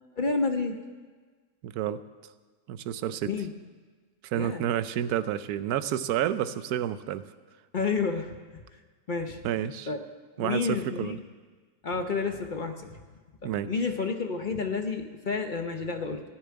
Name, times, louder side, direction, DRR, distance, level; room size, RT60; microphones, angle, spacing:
voice 1, 0.2-0.8 3.3-3.5 4.3-4.7 7.7-8.6 9.1-9.4 9.9-10.0 10.4-11.2 11.8-13.0 13.4-16.2, left 4 dB, 45° left, 6 dB, 0.6 m, -30 dB
voice 2, 1.6-2.0 2.7-3.3 4.2-7.2 9.4-9.9 10.4-11.2 13.4-13.7, right 11 dB, 75° right, 14 dB, 1.1 m, -30 dB
15.5 x 6.9 x 9.7 m, 1.5 s
omnidirectional pair, 1.7 m